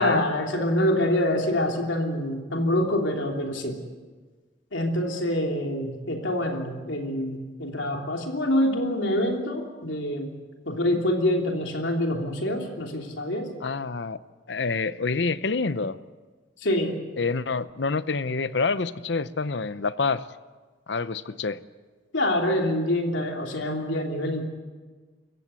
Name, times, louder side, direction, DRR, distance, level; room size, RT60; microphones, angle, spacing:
voice 1, 0.0-3.8 4.7-10.3 10.6-13.5 16.6-16.9 22.1-24.4, left 1 dB, 85° left, 2 dB, 3.2 m, -26 dB
voice 2, 13.6-14.2 14.5-16.0 17.2-20.3 20.9-21.6, left 4 dB, 65° left, 15 dB, 0.7 m, -27 dB
26.0 x 14.5 x 8.3 m, 1.4 s
head